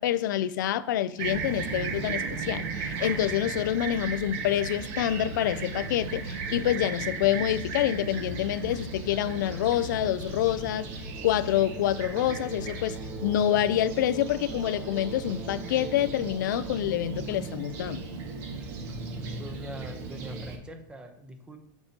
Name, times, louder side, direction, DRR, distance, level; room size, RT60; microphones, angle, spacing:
voice 1, 0.0-10.9 11.2-13.0 13.2-18.0, left 11 dB, 90° left, 0.4 m, -27 dB
Fixed-wing aircraft airplane, 1.2-20.6, right 4 dB, 55° right, 1.5 m, -36 dB
voice 2, 19.3-21.6, right 1 dB, 10° right, 0.8 m, -42 dB
6.7 x 6.6 x 2.9 m
supercardioid pair, 145°, 10 cm